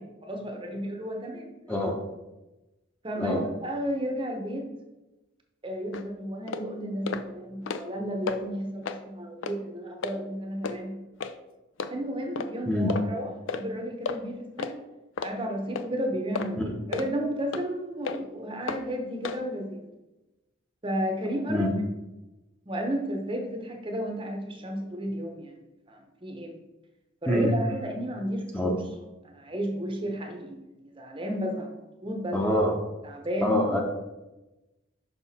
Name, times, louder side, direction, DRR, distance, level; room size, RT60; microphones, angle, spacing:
voice 1, 0.0-1.9 3.0-4.7 5.6-11.0 11.9-14.7 15.2-19.8 20.8-21.7 22.7-25.5 25.9-26.5 27.2-28.8 29.2-30.6 31.0-31.7 32.0-32.4 33.0-33.6, equal, 25° right, 3 dB, 0.8 m, -32 dB
sound 1, 5.9-6.0 6.5-6.6 7.1-7.2 7.5-8.0 8.3-8.4 8.8-9.0 9.4-9.6 10.0-10.2 10.6-10.8 11.2-11.3 11.8-11.9 12.4-12.5 12.9-13.1 13.5-13.6 14.1-14.2 14.6-14.7 15.2-15.3 15.8-15.9 16.4-16.5 16.9-17.1 17.5-17.6 18.1-18.2 18.7-18.8 19.2-19.4, left 5 dB, 70° left, 0.4 m, -32 dB
voice 2, 12.7-13.0 16.6-16.7 21.5-21.7 27.3-27.6 28.5-28.8 32.3-32.7 33.4-33.8, left 1 dB, 5° left, -1 dB, 0.8 m, -25 dB
5.8 x 5.5 x 4.1 m, 1.0 s
head